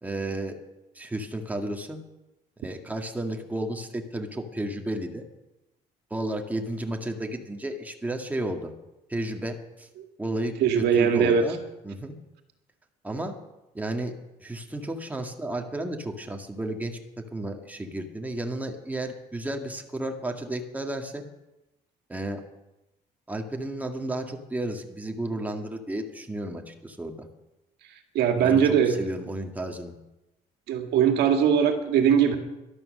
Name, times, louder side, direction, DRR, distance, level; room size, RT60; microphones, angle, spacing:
voice 1, 0.0-0.6 0.9-2.0 2.6-5.2 6.1-8.7 9.1-9.9 10.2-11.6 11.8-12.1 13.0-13.3 13.7-21.2 22.1-22.4 23.3-27.3 28.4-29.9, right 1 dB, 10° right, 3 dB, 1.8 m, -32 dB
voice 2, 10.6-11.4 28.2-28.9 30.7-32.4, right 8 dB, 75° right, 5 dB, 2.0 m, -20 dB
12.5 x 12.0 x 6.5 m, 0.96 s
cardioid pair, 110°, 17 cm